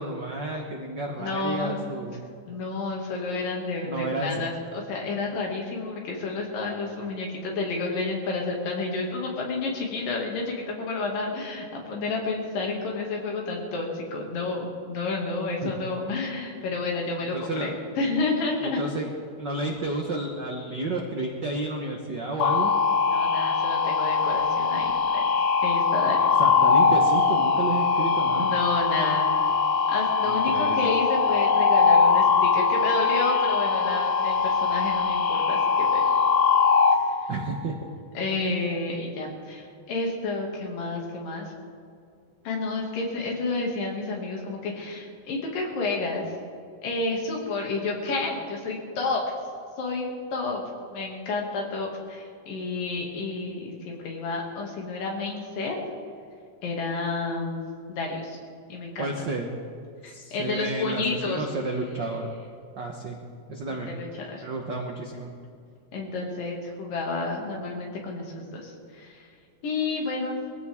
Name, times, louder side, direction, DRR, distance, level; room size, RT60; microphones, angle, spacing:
voice 1, 0.0-2.2 3.8-4.5 15.6-15.7 17.2-17.7 18.6-19.1 19.4-22.7 26.4-28.5 30.2-30.9 37.3-37.8 59.0-59.5 60.0-62.3 62.8-63.2 63.5-63.9 64.4-65.3, right 2 dB, 85° right, 1 dB, 0.9 m, -31 dB
voice 2, 1.2-1.9 2.5-18.8 23.1-24.9 25.6-26.3 28.4-29.4 29.9-36.0 38.2-41.5 42.5-46.3 46.8-49.2 49.8-50.1 50.3-50.6 50.9-55.8 56.6-57.6 57.9-58.4 58.7-59.1 60.0-61.4 63.7-64.4 65.9-69.3 69.6-70.4, left 3 dB, 85° left, -1 dB, 3.9 m, -30 dB
sound 1, 22.4-36.9, left 5 dB, 65° left, 2.1 m, -22 dB
22.0 x 15.5 x 3.6 m, 2.3 s
omnidirectional pair, 3.8 m